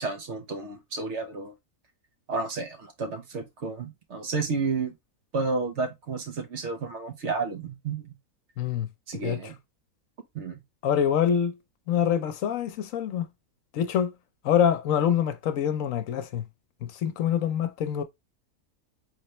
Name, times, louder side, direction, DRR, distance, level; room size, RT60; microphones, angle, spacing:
voice 1, 0.0-1.5 2.3-5.0 5.3-8.2 9.1-9.6 10.3-10.6, right 4 dB, 55° right, 1.2 m, -31 dB
voice 2, 8.6-8.9 9.2-9.4 10.8-11.6 11.9-13.3 13.7-14.1 14.4-16.4 16.8-18.0, left 9 dB, 70° left, 1.0 m, -25 dB
4.1 x 3.3 x 3.0 m
omnidirectional pair, 1.5 m